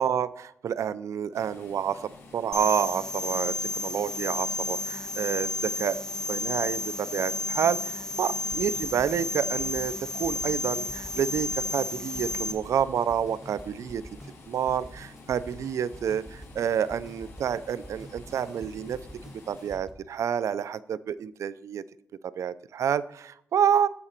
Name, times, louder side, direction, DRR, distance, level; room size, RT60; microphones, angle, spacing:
voice 1, 0.0-6.0 6.3-14.0 14.5-19.0 19.5-21.8 22.2-23.9, right 8 dB, 70° right, 17 dB, 0.4 m, -29 dB
sound 1, 1.3-19.7, left 3 dB, 65° left, 3.1 m, -50 dB
sound 2, 2.5-12.5, left 2 dB, 10° left, 0.9 m, -32 dB
sound 3, 8.5-19.9, right 1 dB, 10° right, 1.5 m, -47 dB
14.0 x 4.9 x 4.4 m, 0.75 s
cardioid pair, 105°, 5 cm